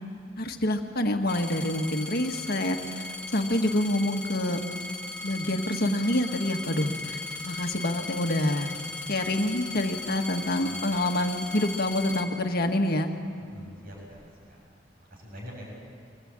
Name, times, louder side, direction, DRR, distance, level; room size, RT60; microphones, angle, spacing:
voice 1, 0.4-4.6 5.2-8.7 9.1-13.1, left 1 dB, 50° left, 4 dB, 1.7 m, -27 dB
sound 1, 1.3-13.0 13.7-14.3, left 2 dB, 5° left, 1.9 m, -38 dB
voice 2, 13.5-14.6 15.1-15.7, equal, 50° right, -2 dB, 6.7 m, -44 dB
24.5 x 18.0 x 8.9 m, 2.2 s
head